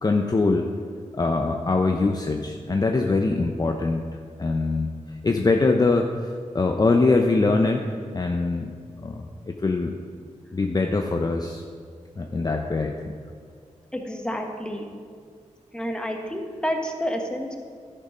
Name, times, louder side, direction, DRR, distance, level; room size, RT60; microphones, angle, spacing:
voice 1, 0.0-0.7 1.1-4.0 4.4-5.0 5.2-6.1 6.5-7.8 8.1-8.7 9.0-9.9 10.5-11.6 12.2-13.0, left 3 dB, 30° left, 3 dB, 0.6 m, -22 dB
voice 2, 13.9-14.9 15.7-17.6, equal, 5° left, 2 dB, 1.3 m, -29 dB
11.5 x 6.6 x 5.2 m, 2.1 s
wide cardioid pair, 80°, 13 cm